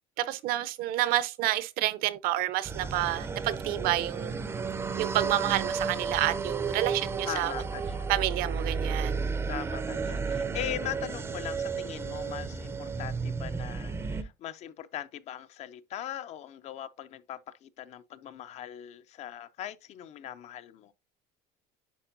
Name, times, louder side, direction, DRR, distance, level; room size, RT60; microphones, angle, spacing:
voice 1, 0.2-4.3 5.0-7.5 8.1-9.2, right 14 dB, 60° right, 0.6 m, -29 dB
sound 1, 2.6-14.2, right 5 dB, 15° right, 0.5 m, -33 dB
voice 2, 7.3-8.1 9.5-20.9, left 11 dB, 40° left, 0.4 m, -40 dB
10.0 x 4.5 x 2.6 m
cardioid pair, 160°, 17 cm